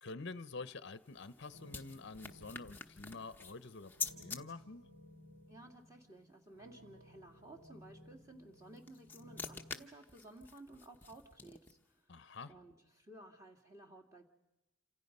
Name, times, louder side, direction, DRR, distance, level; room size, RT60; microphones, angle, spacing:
voice 1, 0.0-4.8 12.1-12.5, left 3 dB, 50° left, 13 dB, 0.8 m, -47 dB
sound 1, 0.8-4.4 8.5-11.9, left 5 dB, 10° left, 0.9 m, -47 dB
sound 2, 1.5-9.7, left 1 dB, 90° right, 3.0 m, -59 dB
voice 2, 5.5-12.1 12.5-14.3, right 2 dB, 15° right, 2 dB, 2.5 m, -56 dB
28.0 x 26.5 x 5.5 m, 0.99 s
head